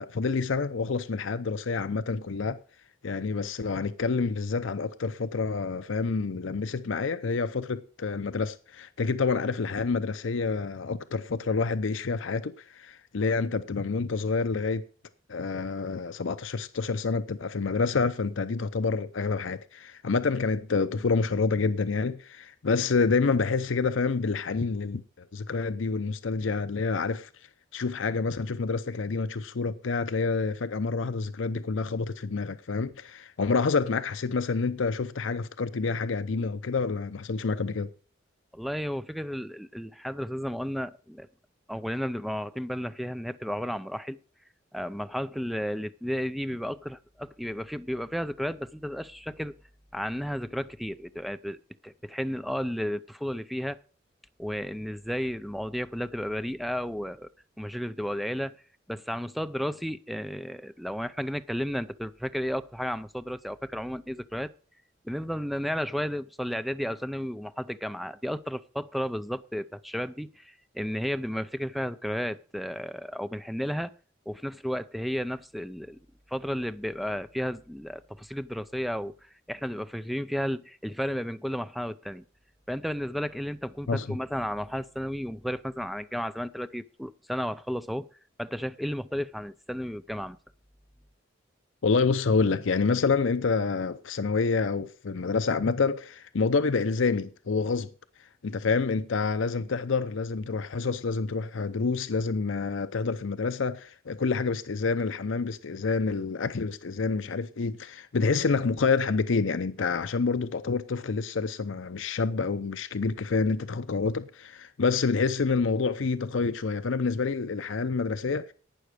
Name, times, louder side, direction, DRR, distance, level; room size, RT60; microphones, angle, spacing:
voice 1, 0.0-2.6 3.0-14.8 15.3-27.3 27.7-37.9 83.9-84.2 91.8-97.9 98.4-118.5, left 4 dB, 75° left, 0.6 m, -28 dB
voice 2, 38.5-41.3 41.7-44.2 44.7-49.6 49.9-53.8 54.4-57.3 57.6-58.6 58.9-64.5 65.0-73.9 74.3-76.0 76.3-79.1 79.5-82.2 82.7-88.1 88.4-90.4, equal, ahead, 0.5 m, -33 dB
11.5 x 9.2 x 4.8 m
head